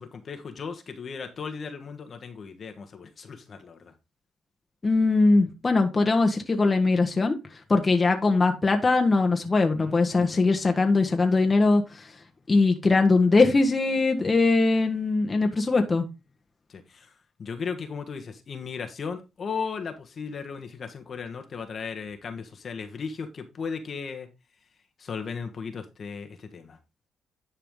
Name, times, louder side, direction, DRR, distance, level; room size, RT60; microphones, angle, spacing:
voice 1, 0.0-3.9 9.8-10.0 16.7-17.1 17.4-24.3 25.0-26.8, left 5 dB, 45° left, 6 dB, 1.3 m, -36 dB
voice 2, 4.8-7.4 7.7-11.8 12.5-16.0, left 3 dB, 25° left, 4 dB, 1.3 m, -21 dB
10.5 x 4.8 x 3.7 m, 0.25 s
cardioid pair, 90°, 0 cm